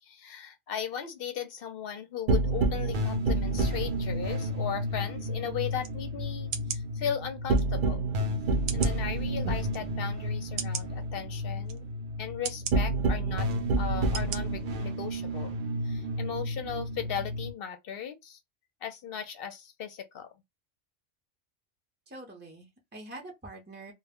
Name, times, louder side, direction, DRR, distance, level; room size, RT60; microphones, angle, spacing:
voice 1, 0.0-8.1 8.7-11.9 12.2-13.5 13.8-15.5 15.8-18.4 18.8-20.3, left 8 dB, 60° left, 0.7 m, -37 dB
sound 1, 2.3-17.5, right 1 dB, 55° right, 0.6 m, -30 dB
sound 2, 5.8-5.9 6.5-6.8 7.6-7.7 8.7-9.0 9.7-9.8 10.6-10.9 11.7-11.8 12.4-12.8 13.5-13.6 14.1-14.4 14.8-14.9, right 7 dB, 90° right, 0.9 m, -35 dB
voice 2, 22.1-23.9, right 2 dB, 15° right, 0.5 m, -45 dB
2.1 x 2.1 x 3.5 m
omnidirectional pair, 1.2 m